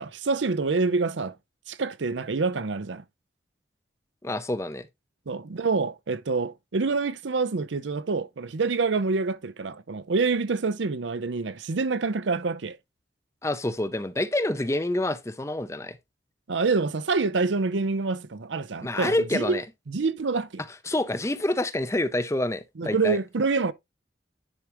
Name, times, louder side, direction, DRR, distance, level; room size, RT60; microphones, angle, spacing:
voice 1, 0.0-1.3 1.7-3.0 5.3-12.8 16.5-19.6 19.9-20.6 22.8-23.7, right 4 dB, 80° right, 0.6 m, -26 dB
voice 2, 4.2-4.9 13.4-16.0 18.8-19.6 20.9-23.2, left 1 dB, 15° left, 0.5 m, -27 dB
10.0 x 4.9 x 3.0 m
head